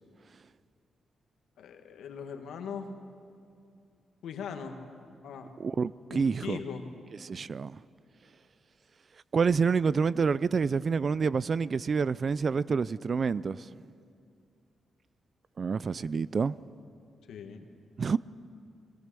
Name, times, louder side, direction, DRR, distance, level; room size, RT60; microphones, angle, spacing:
voice 1, 1.6-2.9 4.2-4.8 5.2-5.5 6.1-6.8 17.3-17.7, left 6 dB, 90° left, 1.6 m, -40 dB
voice 2, 5.6-6.6 7.2-7.8 9.3-13.7 15.6-16.6 18.0-18.2, right 5 dB, 50° right, 0.4 m, -28 dB
22.0 x 18.0 x 6.9 m
cardioid pair, 85°, 0 cm